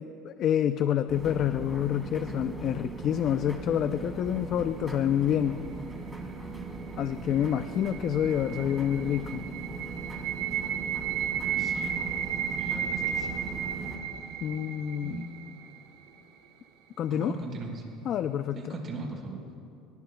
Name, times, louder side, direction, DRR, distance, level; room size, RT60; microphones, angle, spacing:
voice 1, 0.0-5.6 7.0-9.5 14.4-15.2 17.0-17.3 18.1-18.7, left 10 dB, 50° left, 10 dB, 0.5 m, -28 dB
sound 1, 1.1-14.0, right 3 dB, 5° right, 2.8 m, -39 dB
sound 2, 7.1-16.1, right 9 dB, 85° right, 2.2 m, -34 dB
voice 2, 11.4-12.0 12.6-13.4 14.8-15.3 17.1-17.8 18.5-19.6, right 3 dB, 40° right, 1 dB, 4.4 m, -39 dB
24.5 x 23.5 x 2.3 m, 2.4 s
supercardioid pair, 110°, 0 cm